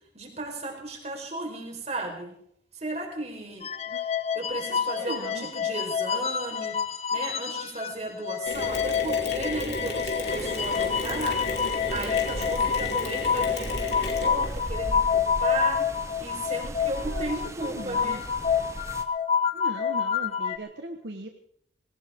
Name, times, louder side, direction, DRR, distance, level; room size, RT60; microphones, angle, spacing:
voice 1, 0.1-2.4 2.7-3.7 4.3-6.8 7.1-11.5 11.9-15.9 16.2-18.2, right 2 dB, 35° right, 2 dB, 4.6 m, -35 dB
sound 1, 3.6-7.9 8.2-20.6, left 7 dB, 35° left, 0.8 m, -28 dB
voice 2, 4.7-5.5 12.4-12.7 17.0-17.3 17.6-18.2 19.5-21.3, right 1 dB, 70° right, 4 dB, 1.4 m, -39 dB
Mechanisms, 8.5-14.7, left 1 dB, 70° left, 3.9 m, -33 dB
sound 2, 10.2-19.0, right 1 dB, 15° right, 1.0 m, -39 dB
20.5 x 18.0 x 3.7 m, 0.70 s
head